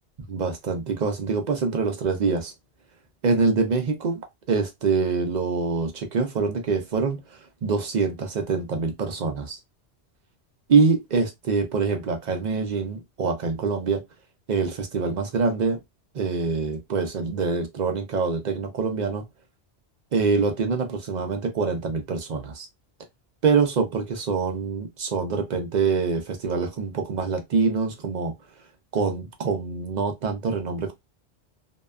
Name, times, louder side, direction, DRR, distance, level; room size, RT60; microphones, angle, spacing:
voice 1, 0.3-2.5 3.2-4.2 4.5-7.2 7.6-9.6 10.7-14.0 14.5-15.8 16.1-19.2 20.1-22.7 23.4-28.3 28.9-30.9, right 4 dB, 55° right, 0.5 m, -25 dB
2.7 x 2.2 x 2.3 m
omnidirectional pair, 1.1 m